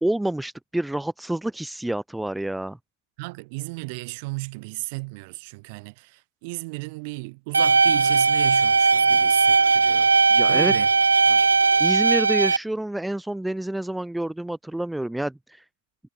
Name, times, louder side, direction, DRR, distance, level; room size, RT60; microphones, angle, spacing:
voice 1, 0.0-2.8 10.3-10.7 11.8-15.6, right 1 dB, 5° right, 0.7 m, -28 dB
voice 2, 3.2-10.1 10.5-10.9 11.3-11.5, right 28 dB, 50° right, 2.6 m, -34 dB
sound 1, 7.5-12.6, right 4 dB, 85° right, 0.5 m, -18 dB
figure-of-eight pair, 100°, 0 cm